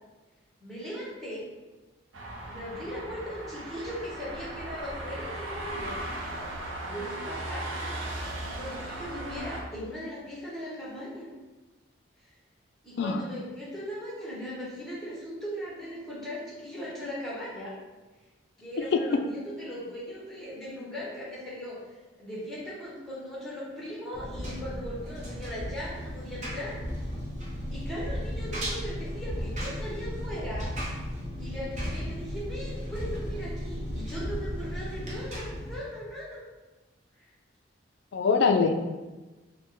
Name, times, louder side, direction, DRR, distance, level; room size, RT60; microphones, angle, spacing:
voice 1, 0.6-1.4 2.5-6.0 6.9-7.7 8.4-11.3 12.2-12.3 12.8-17.7 18.6-27.1 27.7-30.7 31.4-36.4 37.1-37.3, equal, ahead, -7 dB, 1.1 m, -38 dB
sound 1, 2.1-9.6, right 1 dB, 85° right, 0.6 m, -37 dB
Engine, 24.1-35.7, equal, 35° right, 0.8 m, -35 dB
voice 2, 38.1-38.7, left 4 dB, 60° left, 5 dB, 0.3 m, -23 dB
4.1 x 2.1 x 3.8 m, 1.2 s
head